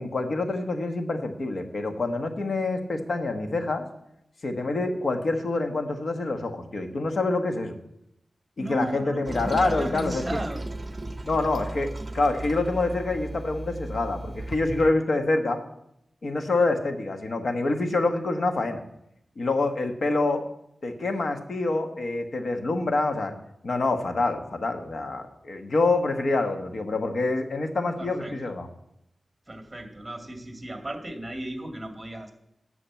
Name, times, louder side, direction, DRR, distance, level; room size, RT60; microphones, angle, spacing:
voice 1, 0.0-3.8 4.4-7.8 8.7-10.4 11.2-11.9 12.1-15.6 16.2-18.8 19.4-20.4 20.8-23.3 23.6-28.7, left 2 dB, 65° left, 5 dB, 1.3 m, -26 dB
voice 2, 8.6-10.7 28.0-28.5 29.5-32.3, right 1 dB, 20° right, 4 dB, 2.1 m, -35 dB
Toilet flush, 9.3-14.9, right 2 dB, 35° right, 0.8 m, -36 dB
10.5 x 7.0 x 7.0 m, 0.79 s
wide cardioid pair, 85°, 0 cm